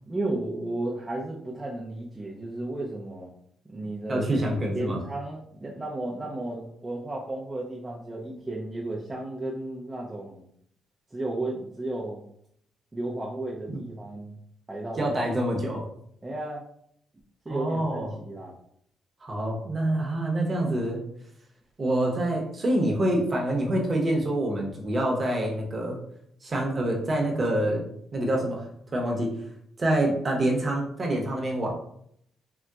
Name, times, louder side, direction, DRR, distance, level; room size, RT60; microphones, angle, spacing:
voice 1, 0.1-3.3 3.7-10.5 11.1-12.2 12.9-14.4 14.7-15.1 16.2-16.6 17.5-18.6, right 2 dB, 15° right, -5 dB, 0.5 m, -34 dB
voice 2, 4.1-5.0 13.7-13.8 15.0-15.8 17.5-18.1 19.2-21.0 21.8-26.0 26.4-27.9 28.1-28.7 28.9-29.3 29.8-31.7, right 1 dB, 35° right, 0 dB, 0.9 m, -26 dB
3.8 x 2.2 x 2.3 m, 0.69 s
cardioid pair, 90°, 0 cm